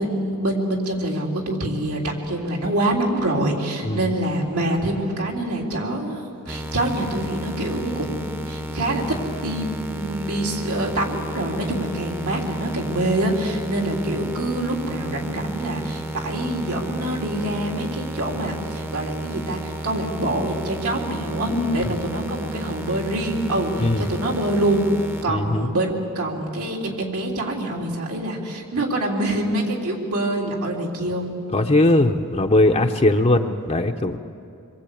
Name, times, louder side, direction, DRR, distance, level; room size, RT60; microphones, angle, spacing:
voice 1, 0.0-9.0 9.4-24.9 25.2-31.3, right 1 dB, 80° right, 0 dB, 3.7 m, -25 dB
sound 1, 6.5-25.2, equal, 10° right, 0.9 m, -32 dB
voice 2, 25.3-25.7 31.5-34.2, left 2 dB, 30° left, 4 dB, 0.8 m, -19 dB
26.0 x 22.5 x 8.6 m, 2.5 s
head